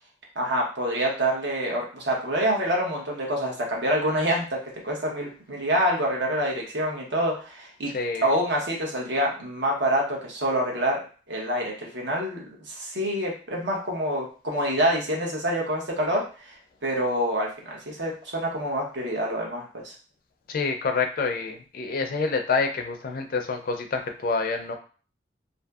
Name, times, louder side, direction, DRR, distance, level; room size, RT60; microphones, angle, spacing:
voice 1, 0.4-4.6 4.8-7.9 8.2-11.0 11.3-16.5 16.8-19.9, equal, 70° right, -2 dB, 0.9 m, -26 dB
voice 2, 7.9-8.3 20.5-24.7, left 4 dB, 50° left, 5 dB, 0.4 m, -27 dB
2.6 x 2.6 x 2.3 m, 0.38 s
head